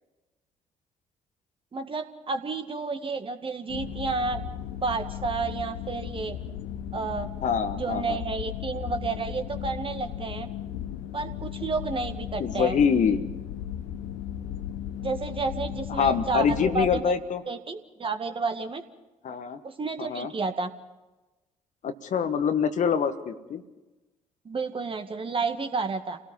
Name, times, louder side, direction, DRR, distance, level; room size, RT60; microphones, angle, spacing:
voice 1, 1.7-4.4 4.8-6.4 6.9-7.3 7.7-10.5 11.1-12.8 15.0-17.1 17.5-18.8 19.6-20.7 24.5-26.2, right 4 dB, 35° right, 7 dB, 1.9 m, -31 dB
sound 1, 3.7-17.0, left 10 dB, 70° left, 0.9 m, -36 dB
voice 2, 7.4-8.2 12.4-13.3 16.0-17.4 19.2-19.6 20.1-20.3 21.8-23.6, left 6 dB, 50° left, 9 dB, 1.4 m, -25 dB
29.0 x 18.0 x 5.5 m, 1.1 s
figure-of-eight pair, 45°, 16 cm